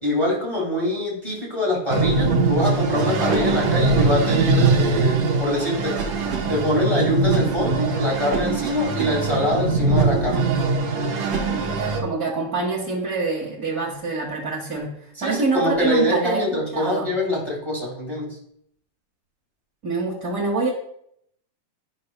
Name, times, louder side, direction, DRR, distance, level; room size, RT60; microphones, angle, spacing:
voice 1, 0.0-6.0 6.5-10.5 15.2-18.4, left 1 dB, 15° left, -3 dB, 1.2 m, -24 dB
sound 1, 1.9-12.0, right 4 dB, 65° right, 1.6 m, -22 dB
voice 2, 11.6-16.4 16.7-17.1 19.8-20.7, right 4 dB, 45° right, -6 dB, 1.2 m, -26 dB
12.5 x 5.5 x 2.2 m, 0.70 s
omnidirectional pair, 3.9 m